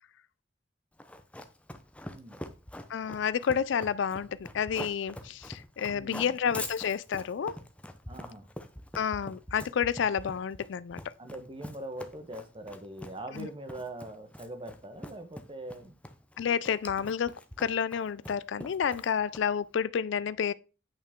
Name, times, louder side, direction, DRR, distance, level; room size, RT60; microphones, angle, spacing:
Run, 1.0-19.7, left 1 dB, 5° left, 0.6 m, -44 dB
voice 1, 2.0-2.5 5.9-6.3 8.1-8.5 11.2-15.9, right 1 dB, 30° right, 1.2 m, -42 dB
voice 2, 2.9-7.6 8.9-11.1 13.4-13.5 16.4-20.5, left 7 dB, 65° left, 0.4 m, -30 dB
8.8 x 5.5 x 3.6 m
head